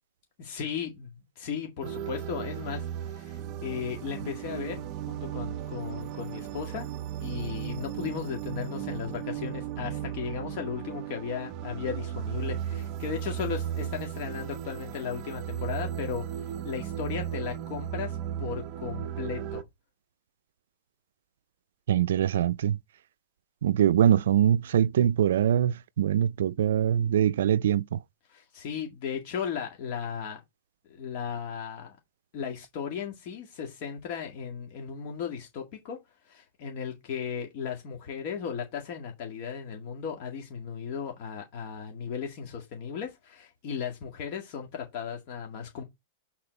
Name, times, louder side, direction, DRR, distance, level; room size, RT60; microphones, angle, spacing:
voice 1, 0.4-1.1 1.4-4.8 5.1-6.9 7.2-16.4 16.6-19.6 28.3-30.4 30.9-31.9 32.3-36.0 36.3-45.8, left 7 dB, 45° left, 2.0 m, -36 dB
sound 1, 1.8-19.6, right 10 dB, 40° right, 0.6 m, -36 dB
voice 2, 21.9-22.8 23.6-28.0, right 10 dB, 80° right, 0.4 m, -23 dB
8.6 x 4.3 x 4.1 m
supercardioid pair, 150°, 0 cm